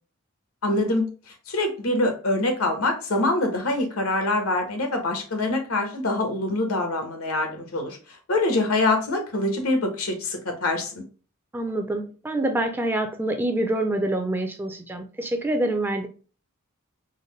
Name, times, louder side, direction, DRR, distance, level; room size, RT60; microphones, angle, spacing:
voice 1, 0.6-1.1 1.5-8.0 8.3-11.0, left 2 dB, 90° left, 1.0 m, -24 dB
voice 2, 11.5-16.1, right 1 dB, 10° right, 0.4 m, -26 dB
3.9 x 2.1 x 3.0 m
head